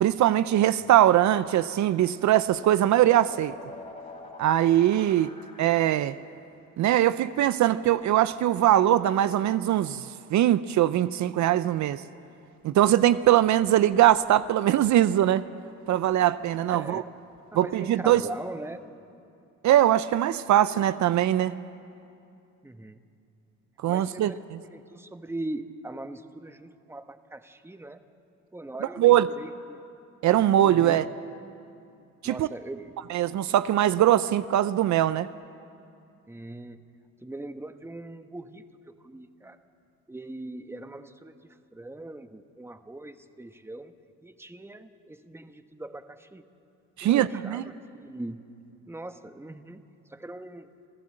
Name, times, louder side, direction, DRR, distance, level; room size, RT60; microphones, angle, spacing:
voice 1, 0.0-3.5 4.4-6.2 6.8-12.0 12.6-15.4 15.9-17.0 17.5-18.2 19.6-21.5 23.8-24.3 29.0-29.3 30.2-31.1 32.2-32.5 33.1-35.3 47.0-47.6, right 12 dB, 70° right, 14 dB, 0.6 m, -21 dB
voice 2, 0.6-0.9 16.7-17.1 17.5-18.8 22.6-23.0 23.9-28.0 28.5-29.9 30.6-31.0 32.2-33.2 36.3-36.8 37.2-39.6 40.1-43.9 44.2-46.5 47.0-48.4 48.9-49.8 50.1-50.7, right 2 dB, 10° right, 9 dB, 1.1 m, -41 dB
sound 1, 1.7-6.3, left 3 dB, 25° left, 2.9 m, -47 dB
27.0 x 15.5 x 7.7 m, 2.6 s
cardioid pair, 90°, 30 cm